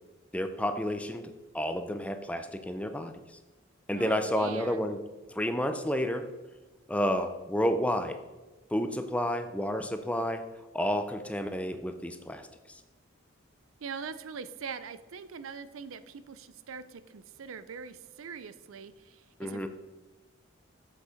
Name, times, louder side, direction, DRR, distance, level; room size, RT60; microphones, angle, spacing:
voice 1, 0.3-3.1 3.9-5.0 5.3-6.3 6.9-8.2 8.7-10.4 10.7-12.5 19.4-19.7, equal, 5° left, 8 dB, 0.5 m, -30 dB
voice 2, 3.9-4.9 13.8-19.7, right 6 dB, 80° right, 14 dB, 0.5 m, -42 dB
7.6 x 6.6 x 5.0 m, 1.2 s
head